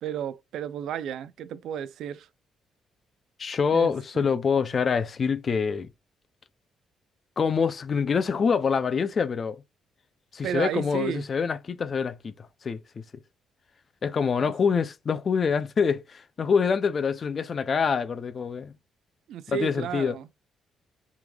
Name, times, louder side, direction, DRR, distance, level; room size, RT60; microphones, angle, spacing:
voice 1, 0.0-2.3 3.7-4.3 10.4-11.2 14.4-14.5 19.3-20.3, right 9 dB, 75° right, 0.3 m, -32 dB
voice 2, 3.4-5.9 7.4-9.6 10.3-13.0 14.0-18.7 19.5-20.2, left 6 dB, 45° left, 0.3 m, -25 dB
3.6 x 3.1 x 2.2 m
cardioid pair, 90°, 0 cm